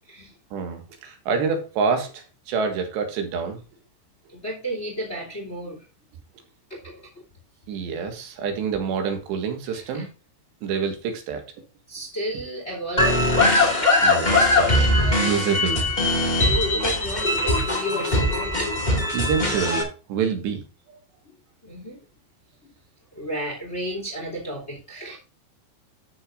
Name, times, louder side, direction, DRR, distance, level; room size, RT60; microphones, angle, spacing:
voice 1, 0.5-3.6 7.7-10.1 10.6-11.4 14.0-15.8 19.1-20.6, right 6 dB, 75° right, 5 dB, 3.8 m, -27 dB
voice 2, 4.3-5.8 6.7-7.0 9.7-10.1 11.9-13.3 16.4-18.7 21.6-22.0 23.1-25.2, right 1 dB, 20° left, 0 dB, 2.3 m, -33 dB
sound 1, 13.0-19.8, left 2 dB, 40° left, 0.6 m, -21 dB
13.5 x 6.5 x 2.6 m, 0.32 s
omnidirectional pair, 5.2 m